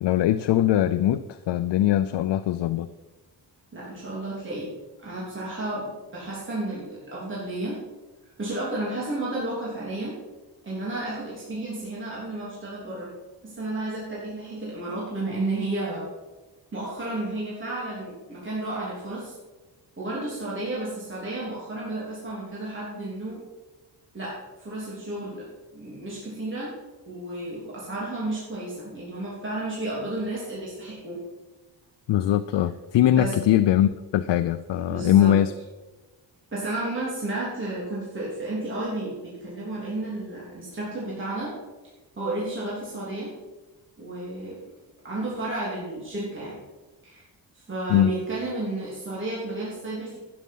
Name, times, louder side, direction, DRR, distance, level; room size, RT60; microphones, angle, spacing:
voice 1, 0.0-2.9 32.1-35.5 47.9-48.1, left 12 dB, 75° left, 11 dB, 0.6 m, -21 dB
voice 2, 3.7-4.7 5.0-7.8 8.4-10.2 10.6-13.1 13.4-16.0 16.7-19.3 20.0-23.4 24.1-25.4 25.7-26.7 27.0-31.2 33.1-33.3 34.9-35.3 36.5-41.5 42.2-43.3 44.0-44.6 45.0-46.6 47.0-47.2 47.5-50.2, right 2 dB, 30° right, -6 dB, 3.2 m, -32 dB
11.5 x 9.6 x 5.5 m, 1.2 s
wide cardioid pair, 155°, 42 cm